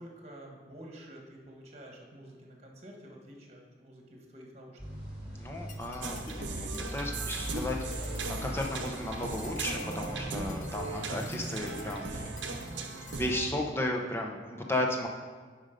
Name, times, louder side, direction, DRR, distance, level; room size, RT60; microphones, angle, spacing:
voice 1, 0.0-4.8, right 1 dB, 35° right, 0 dB, 1.5 m, -49 dB
sound 1, 4.8-11.9, equal, 10° right, 2.9 m, -41 dB
voice 2, 5.4-6.2 6.8-8.1 8.4-12.6 13.2-15.1, left 1 dB, 15° left, 0 dB, 0.8 m, -34 dB
sound 2, 5.7-13.2, left 2 dB, 45° left, 0.8 m, -48 dB
sound 3, 6.0-13.5, right 3 dB, 90° right, 0.8 m, -38 dB
9.7 x 5.2 x 5.2 m, 1.6 s
head